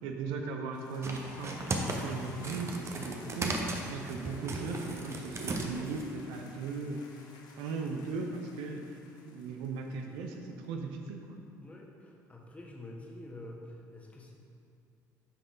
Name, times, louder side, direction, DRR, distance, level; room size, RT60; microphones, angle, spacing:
voice 1, 0.0-7.1 7.6-9.0 9.2-11.4, right 4 dB, 60° right, 4 dB, 0.7 m, -38 dB
sound 1, 0.7-10.5, left 3 dB, 50° left, 0.9 m, -54 dB
sound 2, 1.0-6.1, right 2 dB, 30° right, 1.0 m, -36 dB
voice 2, 11.6-14.3, left 1 dB, 15° left, -1 dB, 1.4 m, -47 dB
10.0 x 5.7 x 3.8 m, 2.4 s
figure-of-eight pair, 55°, 9 cm